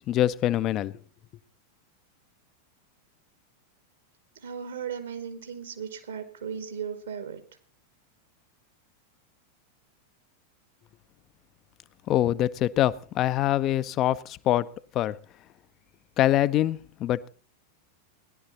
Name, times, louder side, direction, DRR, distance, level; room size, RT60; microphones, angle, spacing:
voice 1, 0.1-1.0 12.1-14.7 14.9-15.2 16.2-17.3, left 13 dB, 35° left, 0.5 m, -24 dB
voice 2, 4.4-7.4, right 7 dB, 65° right, 1.9 m, -36 dB
17.0 x 11.0 x 4.1 m
figure-of-eight pair, 90°, 0 cm